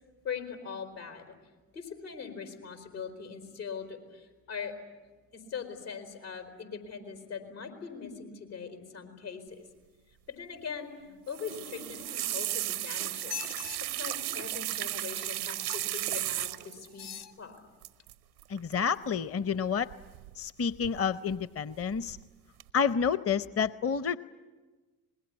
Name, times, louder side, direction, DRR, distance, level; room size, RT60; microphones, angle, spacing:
voice 1, 0.2-1.3 1.7-4.7 5.3-9.7 10.3-13.4 13.9-17.1 17.4-17.6, left 6 dB, 80° left, 3 dB, 4.1 m, -41 dB
sound 1, 11.3-16.9 17.8-18.1 18.4-18.7 19.9-20.5 20.8-21.4 21.8-22.2 22.6-22.7, right 14 dB, 85° right, 0.8 m, -35 dB
sound 2, 12.0-12.7 13.2-13.8 15.7-16.0 16.9-17.3 18.0-18.1, left 9 dB, 60° left, 2.0 m, -42 dB
voice 2, 18.5-19.9 20.4-22.2 22.7-24.2, left 6 dB, 30° left, 16 dB, 0.8 m, -29 dB
26.5 x 21.0 x 9.7 m, 1.2 s
hypercardioid pair, 45°, 45 cm